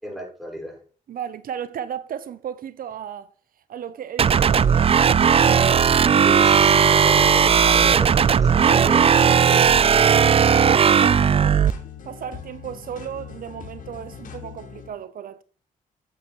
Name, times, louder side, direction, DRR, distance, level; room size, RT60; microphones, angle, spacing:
voice 1, 0.0-0.8 6.2-9.7, equal, ahead, 5.5 m, -34 dB
voice 2, 1.1-3.3 3.7-5.4 8.2-8.4 9.5-11.6 12.0-15.4, right 9 dB, 75° right, 0.7 m, -35 dB
sound 1, 4.2-11.7, right 7 dB, 40° right, 0.4 m, -16 dB
sound 2, 4.6-14.9, left 7 dB, 65° left, 2.8 m, -40 dB
9.0 x 8.5 x 4.5 m
cardioid pair, 75°, 15 cm